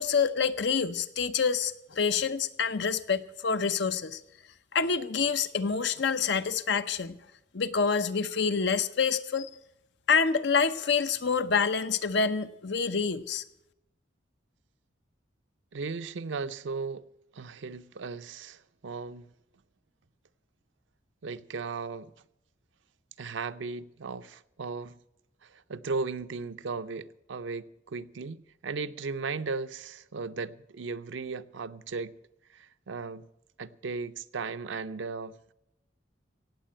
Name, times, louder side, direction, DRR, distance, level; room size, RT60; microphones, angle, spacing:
voice 1, 0.0-4.2 4.7-7.2 7.5-9.5 10.1-13.4, left 5 dB, 65° left, 0.7 m, -27 dB
voice 2, 15.7-17.0 17.3-19.3 21.2-22.1 23.2-25.0 25.4-32.2 32.5-33.3 33.6-35.5, right 4 dB, 90° right, 0.6 m, -36 dB
17.5 x 7.5 x 8.8 m
head